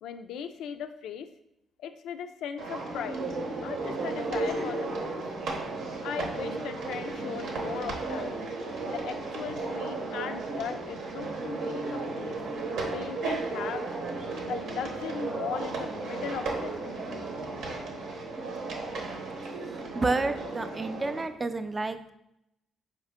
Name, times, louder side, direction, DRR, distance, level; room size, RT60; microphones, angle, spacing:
voice 1, 0.0-1.3 1.8-3.2 3.6-5.2 6.0-8.3 8.9-12.4 12.9-13.9 14.5-16.9, left 7 dB, 80° left, 9 dB, 0.3 m, -38 dB
sound 1, 2.6-21.2, right 3 dB, 85° right, 0.8 m, -34 dB
voice 2, 19.9-22.1, right 3 dB, 25° right, 9 dB, 0.3 m, -30 dB
4.4 x 2.8 x 3.5 m, 0.80 s
cardioid pair, 90°, 0 cm